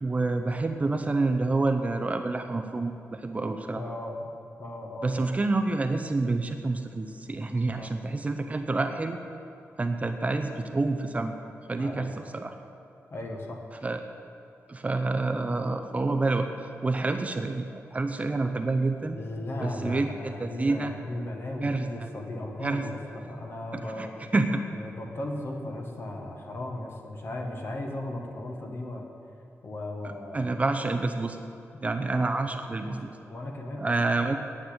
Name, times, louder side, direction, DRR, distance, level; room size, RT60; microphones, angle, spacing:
voice 1, 0.0-3.8 5.0-9.2 9.8-11.3 11.7-12.5 13.8-14.0 14.7-19.2 19.6-20.9 21.6-21.8 22.6-22.8 23.7-24.1 24.3-24.6 30.0-31.4 31.8-33.1 33.8-34.4, right 3 dB, 25° right, 7 dB, 0.6 m, -28 dB
voice 2, 3.7-4.3 4.6-5.3 7.6-7.9 11.8-12.2 13.1-13.6 19.1-24.1 24.7-29.0 29.6-30.5 31.7-31.8 32.1-32.5 32.8-33.9, left 1 dB, 45° left, 1 dB, 1.6 m, -36 dB
9.4 x 8.0 x 8.8 m, 2.7 s
wide cardioid pair, 140°, 5 cm